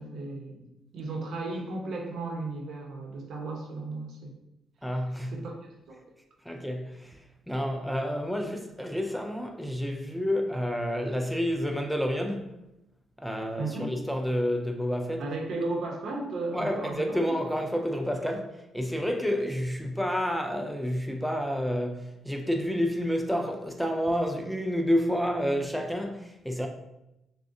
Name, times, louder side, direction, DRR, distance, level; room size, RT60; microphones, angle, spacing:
voice 1, 0.0-4.3 5.3-6.0 13.6-13.9 15.2-17.2, right 2 dB, 70° right, 0.9 m, -35 dB
voice 2, 4.8-5.4 6.4-12.5 13.2-15.2 16.5-26.7, equal, ahead, 0.4 m, -29 dB
6.1 x 2.3 x 2.6 m
cardioid pair, 90°, 0 cm